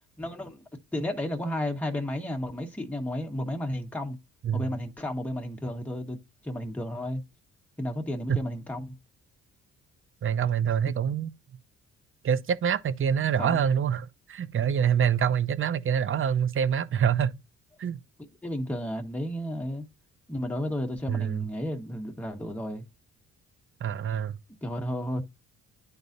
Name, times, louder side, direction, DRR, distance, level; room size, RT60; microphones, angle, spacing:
voice 1, 0.2-0.6 0.9-4.2 4.5-6.2 6.4-7.2 7.8-8.9 13.4-13.6 18.4-19.8 20.3-22.8 24.6-25.2, left 1 dB, 5° left, 1.4 m, -32 dB
voice 2, 10.2-11.3 12.2-17.4 17.8-18.0 21.1-21.5 23.8-24.4, right 8 dB, 45° right, 0.7 m, -26 dB
11.0 x 4.0 x 2.6 m
cardioid pair, 90°, 30 cm